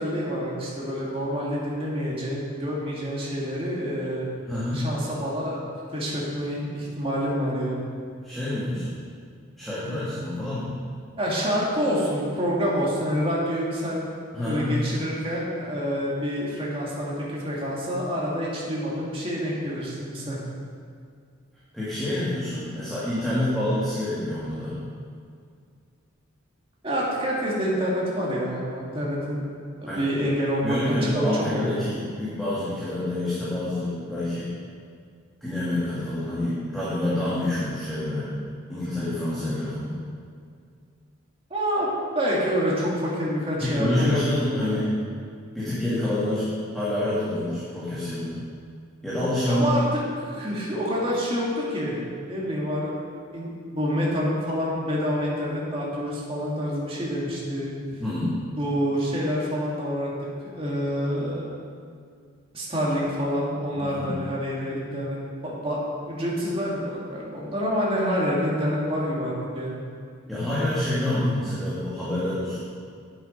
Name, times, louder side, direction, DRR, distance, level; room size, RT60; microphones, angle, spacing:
voice 1, 0.0-4.3 4.7-5.6 5.9-7.8 11.2-14.0 14.4-20.4 26.8-29.4 29.8-31.7 41.5-41.9 42.1-44.7 49.5-49.8 50.2-52.0 52.3-52.9 53.3-57.7 58.6-60.1 60.4-61.4 62.5-65.2 65.4-65.8 66.1-69.7, equal, 25° right, -5 dB, 2.0 m, -27 dB
voice 2, 4.5-4.8 8.2-9.0 9.6-10.7 14.3-14.7 21.7-24.8 29.8-30.1 30.6-34.5 35.4-38.4 38.7-39.9 43.6-45.0 45.5-46.5 46.7-48.4 49.0-49.7 58.0-58.4 63.7-64.2 70.3-72.6, left 1 dB, ahead, -11 dB, 1.7 m, -27 dB
8.5 x 7.6 x 5.2 m, 2.2 s
head